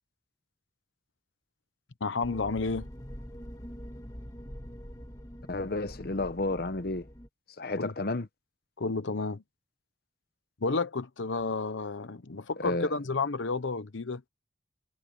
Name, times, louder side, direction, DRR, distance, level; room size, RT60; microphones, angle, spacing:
voice 1, 2.0-2.9 7.8-7.9 8.8-9.4 10.6-14.2, left 3 dB, 75° left, 0.9 m, -31 dB
sound 1, 2.2-7.3, equal, 20° left, 2.1 m, -44 dB
voice 2, 5.5-7.1 7.6-8.3 12.6-12.9, left 2 dB, 50° left, 0.9 m, -31 dB
head